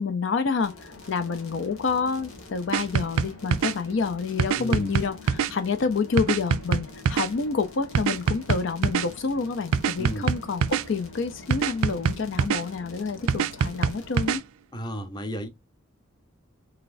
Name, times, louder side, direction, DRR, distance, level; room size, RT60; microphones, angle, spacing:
voice 1, 0.0-14.4, left 5 dB, 60° left, 0.4 m, -28 dB
sound 1, 0.6-14.4, left 3 dB, 90° left, 1.6 m, -45 dB
sound 2, 2.7-3.7 4.4-5.5 6.2-7.3 7.9-9.1 9.7-10.8 11.5-12.6 13.3-14.4, right 6 dB, 85° right, 0.4 m, -24 dB
voice 2, 4.5-4.9 10.0-10.3 14.7-15.5, equal, 20° left, 0.7 m, -33 dB
4.0 x 3.3 x 2.5 m
head